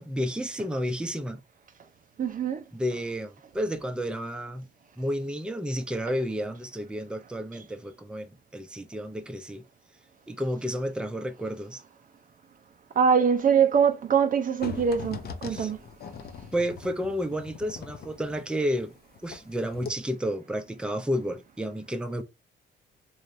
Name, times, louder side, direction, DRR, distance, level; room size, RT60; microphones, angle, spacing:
voice 1, 0.0-1.4 2.7-4.7 5.0-9.6 10.3-11.8 15.5-15.7 16.5-18.9 19.2-22.2, equal, 5° right, 0.6 m, -31 dB
voice 2, 2.2-2.6 13.0-15.8, right 7 dB, 45° right, 0.5 m, -23 dB
sound 1, 14.6-19.5 19.7-19.9, left 6 dB, 50° left, 0.7 m, -41 dB
3.3 x 3.1 x 2.6 m
cardioid pair, 90°, 20 cm